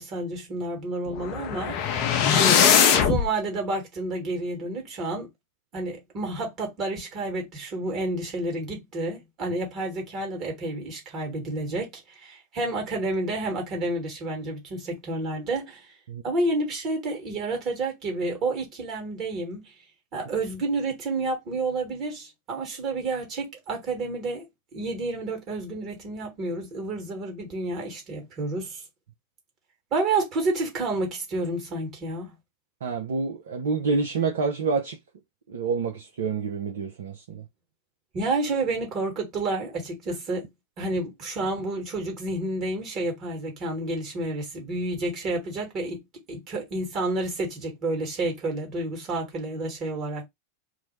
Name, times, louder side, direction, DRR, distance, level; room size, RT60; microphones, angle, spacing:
voice 1, 0.0-1.9 2.3-5.3 5.7-15.9 16.2-19.6 20.1-24.4 24.7-28.8 29.9-32.3 38.1-40.5 40.8-46.0 46.3-50.3, right 2 dB, 35° right, 1.3 m, -30 dB
sound 1, 1.1-3.3, left 8 dB, 40° left, 0.5 m, -20 dB
voice 2, 32.8-35.0 35.5-37.4, right 4 dB, 60° right, 0.4 m, -28 dB
2.4 x 2.0 x 3.0 m
figure-of-eight pair, 90°, 0 cm